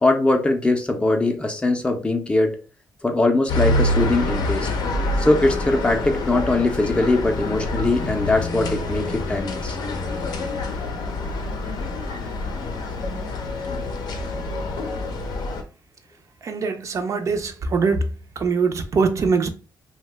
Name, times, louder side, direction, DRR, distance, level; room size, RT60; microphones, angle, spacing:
voice 1, 0.0-2.6 3.0-4.7 5.2-9.8, left 2 dB, 15° left, 0.5 m, -21 dB
sound 1, 3.5-15.6, left 2 dB, 75° left, 0.5 m, -26 dB
voice 2, 16.4-18.0 18.4-19.5, right 5 dB, 50° right, 0.4 m, -22 dB
2.7 x 2.1 x 3.2 m
cardioid pair, 120°, 7 cm